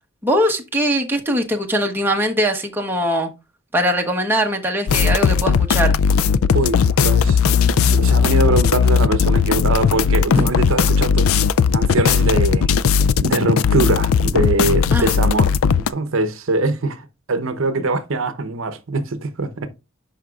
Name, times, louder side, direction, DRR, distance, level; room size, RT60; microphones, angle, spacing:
voice 1, 0.2-3.3 3.7-5.9 10.3-10.5 14.9-15.1 17.8-17.9, equal, 10° right, 1.1 m, -21 dB
sound 1, 4.9-15.9, left 6 dB, 75° left, 0.4 m, -17 dB
voice 2, 6.5-11.3 11.7-12.7 13.2-19.7, right 2 dB, 65° right, 0.8 m, -23 dB
11.0 x 5.1 x 2.4 m
head